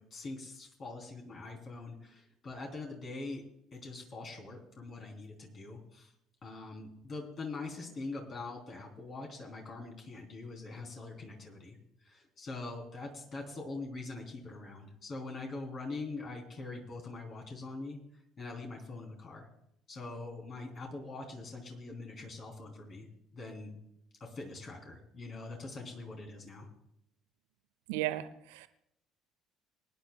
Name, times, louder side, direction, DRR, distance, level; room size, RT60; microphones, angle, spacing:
voice 1, 0.0-3.4 3.7-6.1 6.4-18.0 18.4-19.5 19.9-23.8 24.2-26.7, left 3 dB, 40° left, 1 dB, 3.3 m, -43 dB
voice 2, 27.9-28.7, right 14 dB, 70° right, 12 dB, 0.7 m, -35 dB
24.0 x 10.5 x 2.3 m, 0.77 s
figure-of-eight pair, 55°, 0 cm